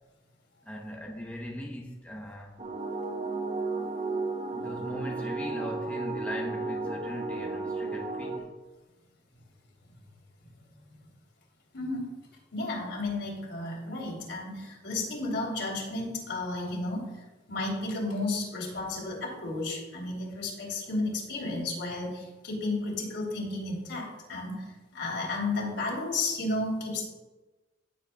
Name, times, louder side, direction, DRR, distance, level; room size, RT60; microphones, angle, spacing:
voice 1, 0.7-2.6 4.5-8.6, equal, 10° left, 0.8 m, -39 dB
sound 1, 2.6-8.4, right 3 dB, 35° right, 0.8 m, -33 dB
voice 2, 11.7-12.1 12.5-17.1 17.5-27.1, left 2 dB, 70° left, 3.2 m, -33 dB
15.5 x 7.7 x 2.3 m
head